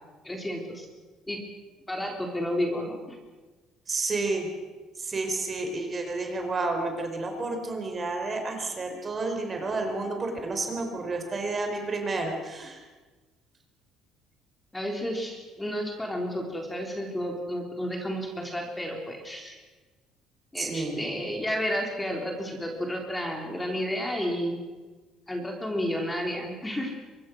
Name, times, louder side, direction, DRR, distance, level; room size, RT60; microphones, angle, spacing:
voice 1, 0.2-0.9 1.3-1.4 1.9-3.2 14.7-19.6 20.5-24.6 25.3-26.9, equal, 10° left, 1 dB, 3.7 m, -31 dB
voice 2, 3.9-4.5 5.0-12.8 20.6-21.0, right 3 dB, 30° right, 4 dB, 4.5 m, -30 dB
24.5 x 22.0 x 6.4 m, 1.3 s
cardioid pair, 130°, 0 cm